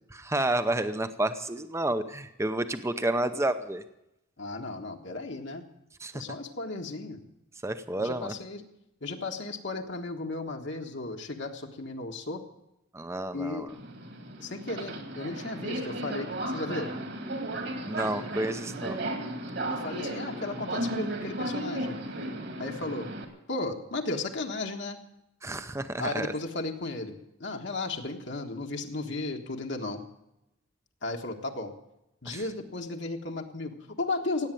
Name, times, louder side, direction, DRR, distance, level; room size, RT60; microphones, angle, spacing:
voice 1, 0.1-3.8 6.0-6.2 7.6-8.3 12.9-13.7 17.9-19.0 25.4-26.3 32.3-32.4, right 1 dB, 15° right, 10 dB, 0.7 m, -30 dB
voice 2, 4.4-5.7 6.1-7.2 8.0-8.6 9.0-12.4 13.3-13.7 14.4-16.9 19.7-21.9 22.6-23.1 23.5-25.0 26.0-30.0 31.0-31.7 32.2-34.5, left 2 dB, 60° left, 2 dB, 1.5 m, -35 dB
Subway metro underground, 13.7-23.2, right 1 dB, 55° right, 2.3 m, -35 dB
17.0 x 8.8 x 9.2 m, 0.87 s
head